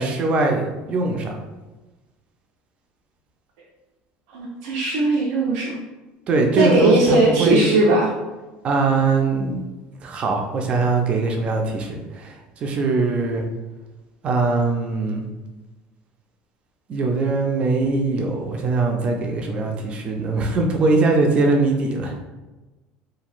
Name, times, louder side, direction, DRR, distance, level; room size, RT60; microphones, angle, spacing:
voice 1, 0.0-1.3 6.3-7.6 8.6-9.6 10.0-12.4 12.6-13.4 14.2-15.2 16.9-22.2, right 3 dB, 35° right, 2 dB, 0.4 m, -21 dB
voice 2, 4.3-5.7 6.6-8.1, right 2 dB, 90° right, -5 dB, 0.5 m, -18 dB
2.9 x 2.6 x 2.4 m, 1.1 s
cardioid pair, 150°, 3 cm